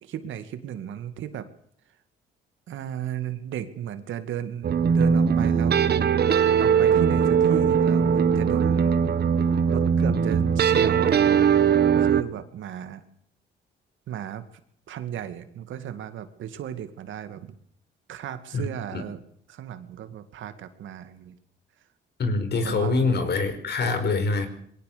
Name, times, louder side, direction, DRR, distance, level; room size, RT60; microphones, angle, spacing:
voice 1, 0.0-1.5 2.7-6.1 6.6-9.0 9.7-11.5 11.9-13.0 14.1-14.4 14.9-17.5 18.1-19.2 19.5-21.4 22.6-23.1, right 10 dB, 75° right, 10 dB, 2.4 m, -35 dB
sound 1, 4.6-12.2, right 7 dB, 55° right, 1.6 m, -20 dB
voice 2, 18.5-19.0 22.2-24.5, left 3 dB, 55° left, 9 dB, 5.3 m, -25 dB
22.0 x 17.5 x 7.0 m, 0.64 s
cardioid pair, 90°, 20 cm